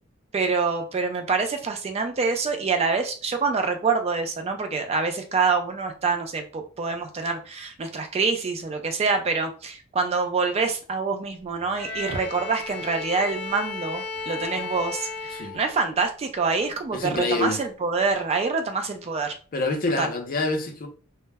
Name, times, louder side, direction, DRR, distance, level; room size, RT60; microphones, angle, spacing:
voice 1, 0.3-19.3 20.0-20.1, right 4 dB, 30° right, 0.3 m, -26 dB
Bowed string instrument, 11.7-16.1, left 4 dB, 5° left, 0.7 m, -35 dB
voice 2, 16.9-17.6 19.5-20.9, left 2 dB, 45° left, 0.5 m, -26 dB
2.1 x 2.0 x 3.3 m
head